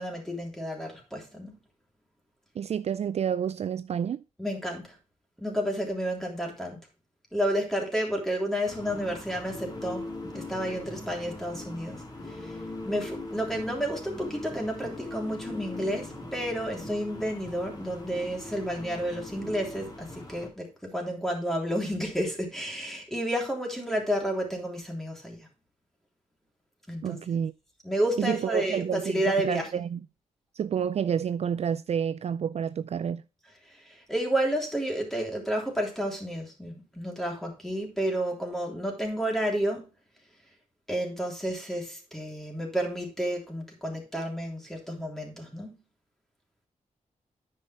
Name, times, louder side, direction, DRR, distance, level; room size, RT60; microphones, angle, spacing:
voice 1, 0.0-1.6 4.4-5.0 5.4-6.9 7.3-10.0 10.3-12.0 12.3-12.6 12.8-25.5 26.9-27.4 27.8-29.7 33.7-39.9 40.9-45.8, equal, 5° left, 3.3 m, -31 dB
voice 2, 2.6-4.2 27.0-27.5 28.2-30.0 30.5-33.2, right 8 dB, 55° right, 0.4 m, -29 dB
sound 1, 8.6-20.5, left 2 dB, 30° left, 2.7 m, -40 dB
9.7 x 5.7 x 4.4 m
cardioid pair, 90°, 13 cm